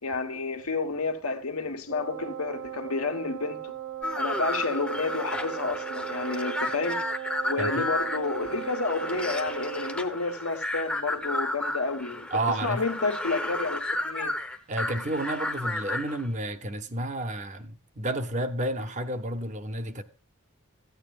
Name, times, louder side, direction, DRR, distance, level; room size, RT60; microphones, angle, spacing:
voice 1, 0.0-3.7 4.1-7.0 7.5-12.3 12.6-14.3, left 3 dB, 90° left, 1.4 m, -30 dB
Wind instrument woodwind instrument, 1.9-10.1, right 12 dB, 85° right, 3.0 m, -37 dB
sound 1, 4.0-16.3, left 1 dB, 5° left, 0.7 m, -32 dB
voice 2, 7.6-7.9 12.3-12.8 14.7-20.0, right 1 dB, 35° right, 0.7 m, -31 dB
13.5 x 8.9 x 2.4 m
head